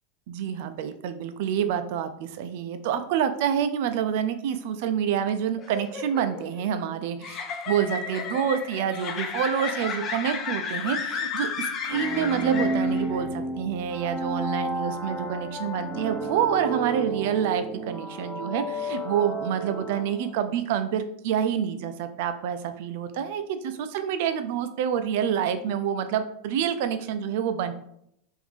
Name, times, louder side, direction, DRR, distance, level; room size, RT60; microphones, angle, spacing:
voice 1, 0.3-7.4 7.7-27.7, right 8 dB, 60° right, 9 dB, 0.4 m, -27 dB
sound 1, 5.6-13.2, left 5 dB, 40° left, 0.7 m, -33 dB
sound 2, 11.9-20.5, right 1 dB, 10° left, 1.0 m, -31 dB
3.5 x 2.6 x 3.4 m, 0.72 s
hypercardioid pair, 85°, 0 cm